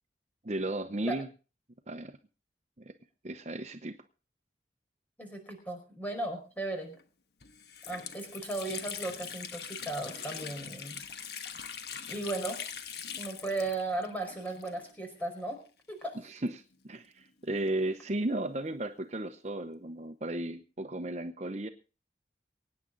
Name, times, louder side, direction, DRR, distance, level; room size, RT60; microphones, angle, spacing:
voice 1, 0.4-1.3 1.9-2.2 2.8-2.9 3.2-4.0 16.2-21.7, right 1 dB, 40° right, 7 dB, 0.8 m, -35 dB
voice 2, 5.2-7.0 7.9-11.0 12.1-12.6 13.2-15.6 15.9-16.2, right 2 dB, 10° left, 3 dB, 4.8 m, -36 dB
Water tap faucet, 6.9-7.0 7.4-15.1 15.4-15.5 16.3-17.9, left 7 dB, 70° left, 1.3 m, -42 dB
23.5 x 9.7 x 3.9 m, 0.35 s
head